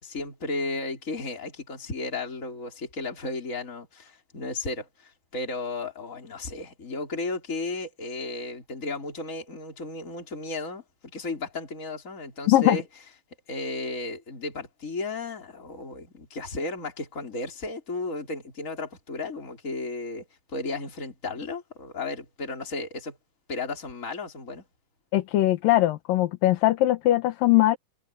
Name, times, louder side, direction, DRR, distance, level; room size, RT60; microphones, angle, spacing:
voice 1, 0.0-10.8 11.1-12.8 13.5-20.3 20.5-23.2 23.5-24.6, left 3 dB, 20° left, 4.9 m, -34 dB
voice 2, 12.5-12.8 25.1-27.8, left 15 dB, 70° left, 2.7 m, -21 dB
omnidirectional pair, 4.4 m